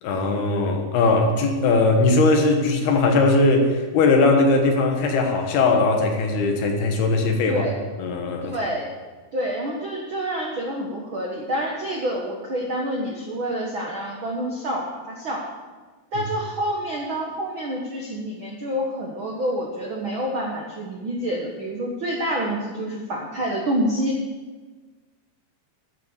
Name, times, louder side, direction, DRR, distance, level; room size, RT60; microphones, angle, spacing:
voice 1, 0.0-7.6 8.0-8.6, left 3 dB, 75° left, 3 dB, 3.3 m, -19 dB
voice 2, 7.5-7.8 8.4-8.9 9.3-15.4 16.1-24.2, equal, 85° right, -1 dB, 1.1 m, -27 dB
11.5 x 7.1 x 8.1 m, 1.3 s
omnidirectional pair, 4.6 m